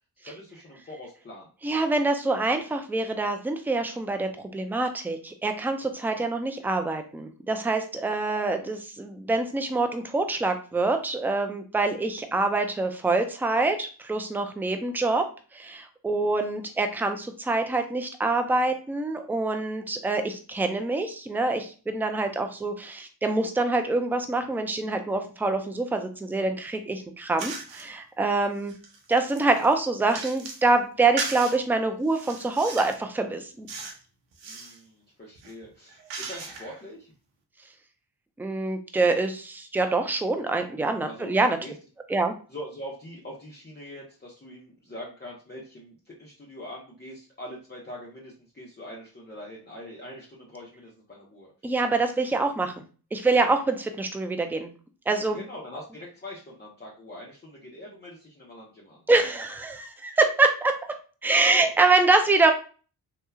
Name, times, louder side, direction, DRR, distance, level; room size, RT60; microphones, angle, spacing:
voice 1, 0.2-1.5 8.1-8.2 34.4-37.1 41.0-41.7 42.5-51.5 55.3-59.0 61.5-61.7, left 1 dB, 20° left, -4 dB, 0.8 m, -43 dB
voice 2, 1.6-15.3 15.5-28.7 29.1-33.7 38.4-41.6 42.1-42.3 51.6-52.7 53.1-54.7 55.1-55.4 59.1-60.8 61.2-62.5, right 3 dB, 5° right, 6 dB, 0.4 m, -25 dB
sound 1, 27.4-27.9 28.4-30.7 31.2-31.6 32.1-33.0 33.7-34.0 34.3-34.8 35.4-36.8, right 4 dB, 70° right, 0.8 m, -37 dB
2.9 x 2.2 x 2.3 m, 0.37 s
supercardioid pair, 45°, 46 cm